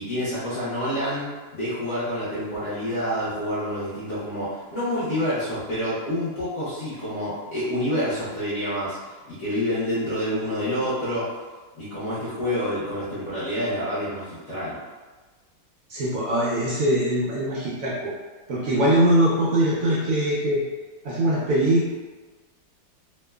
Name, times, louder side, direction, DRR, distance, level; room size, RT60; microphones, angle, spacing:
voice 1, 0.0-9.0 9.3-11.4 11.8-14.8, equal, 60° left, -11 dB, 0.8 m, -28 dB
voice 2, 15.9-18.1 18.5-20.6 21.0-21.9, right 1 dB, 75° right, -7 dB, 0.7 m, -22 dB
2.9 x 2.1 x 2.2 m, 1.3 s
omnidirectional pair, 2.0 m